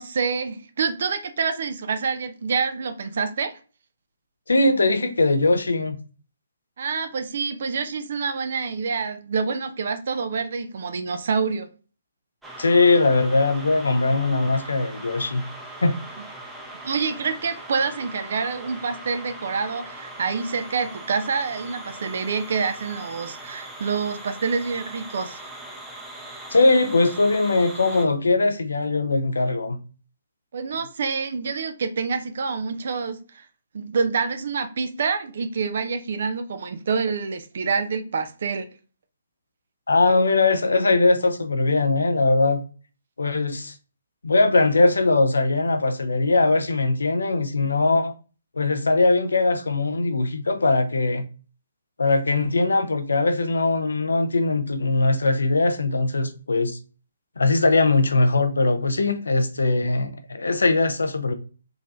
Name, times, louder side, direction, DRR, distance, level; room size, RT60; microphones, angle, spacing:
voice 1, 0.0-3.5 6.8-11.7 16.8-25.4 30.5-33.4 33.7-38.7, right 5 dB, 55° right, 0.6 m, -27 dB
voice 2, 4.5-6.0 12.6-15.5 15.8-16.0 26.5-29.8 39.9-42.6 43.2-43.7 44.2-48.1 48.6-51.2 52.0-56.8 57.4-61.3, left 3 dB, 75° left, 0.6 m, -20 dB
sound 1, 12.4-28.1, right 1 dB, 5° right, 0.7 m, -40 dB
3.7 x 3.2 x 2.5 m
figure-of-eight pair, 135°, 0 cm